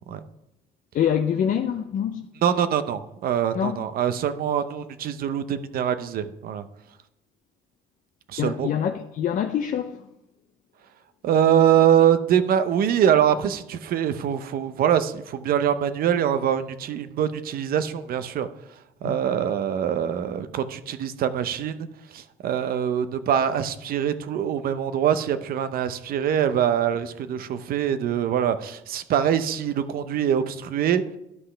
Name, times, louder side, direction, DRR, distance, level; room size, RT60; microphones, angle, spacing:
voice 1, 0.9-2.3 3.5-3.8 8.4-10.1 19.0-19.2, left 9 dB, 50° left, 0.6 m, -25 dB
voice 2, 2.4-6.6 8.3-8.7 11.2-18.5 19.0-21.9 22.1-31.0, right 9 dB, 60° right, 0.7 m, -23 dB
12.0 x 5.6 x 3.3 m
cardioid pair, 110°, 17 cm